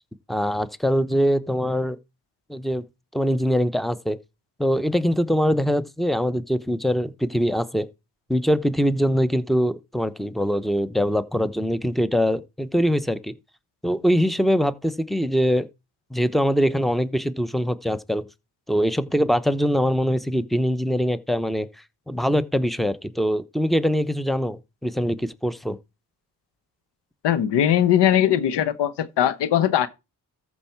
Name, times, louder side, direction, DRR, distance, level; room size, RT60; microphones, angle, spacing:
voice 1, 0.3-2.0 2.5-2.8 3.1-4.2 4.6-7.9 8.3-13.3 13.8-15.7 16.1-18.3 18.7-21.7 22.1-25.8, equal, ahead, 0.8 m, -23 dB
voice 2, 27.2-29.9, left 10 dB, 80° left, 1.0 m, -20 dB
13.5 x 4.6 x 4.5 m
supercardioid pair, 55°, 41 cm